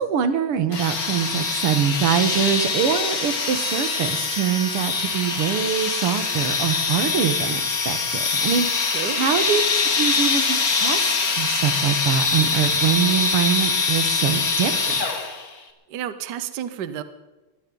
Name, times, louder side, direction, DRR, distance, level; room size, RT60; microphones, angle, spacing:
voice 1, 0.0-11.0 11.4-15.0, right 8 dB, 85° right, 10 dB, 2.2 m, -24 dB
sound 1, 0.7-15.5, left 4 dB, 45° left, 2.1 m, -23 dB
voice 2, 8.8-9.2 15.9-17.0, right 10 dB, 60° right, 12 dB, 1.4 m, -31 dB
21.5 x 15.0 x 3.9 m, 1.1 s
omnidirectional pair, 2.4 m